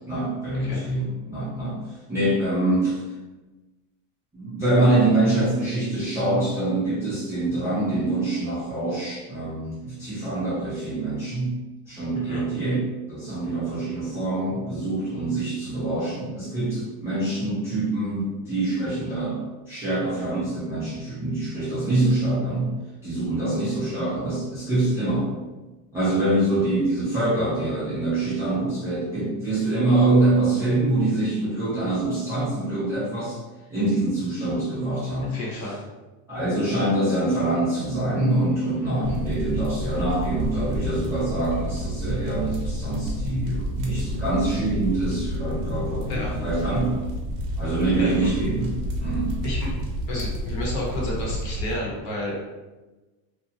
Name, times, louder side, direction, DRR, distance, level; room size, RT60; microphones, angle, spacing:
voice 1, 0.1-3.0 4.3-19.4 19.7-22.7 23.0-25.3 25.9-33.4 33.7-35.4 36.3-47.0 47.6-49.3, right 2 dB, 5° right, -13 dB, 0.4 m, -25 dB
voice 2, 35.3-35.8 46.1-46.3 48.0-48.3 49.4-49.7 50.1-52.4, left 1 dB, 45° left, -4 dB, 0.8 m, -31 dB
sound 1, 39.0-51.7, equal, 60° right, 0.7 m, -30 dB
2.8 x 2.2 x 2.7 m, 1.1 s
cardioid pair, 170°, 41 cm